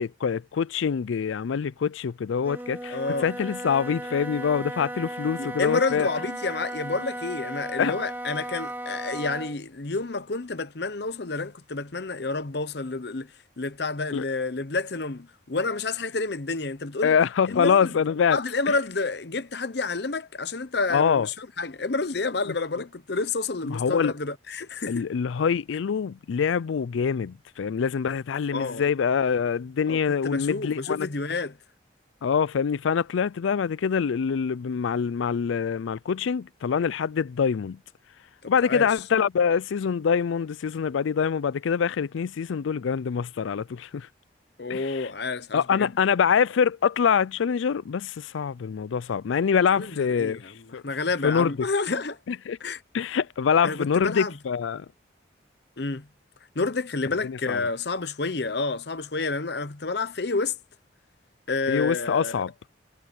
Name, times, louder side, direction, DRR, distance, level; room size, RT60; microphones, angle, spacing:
voice 1, 0.0-6.1 7.8-7.9 14.1-14.2 17.0-18.4 20.9-21.3 23.6-24.1 24.9-31.1 32.2-37.8 38.5-44.1 44.7-45.1 45.5-50.4 50.7-50.8 51.2-51.5 52.3-52.6 52.9-54.9 57.2-57.6 61.7-62.5, left 6 dB, 85° left, 0.4 m, -25 dB
Wind instrument woodwind instrument, 2.4-9.6, right 1 dB, 10° right, 2.0 m, -36 dB
voice 2, 2.9-3.3 5.4-13.3 13.6-17.2 17.5-18.0 18.3-25.0 28.5-28.8 29.9-31.6 38.4-38.9 44.6-45.9 49.8-52.2 52.6-52.8 53.6-54.3 55.8-56.1 56.5-60.6 61.5-62.4, left 3 dB, 60° left, 0.9 m, -29 dB
head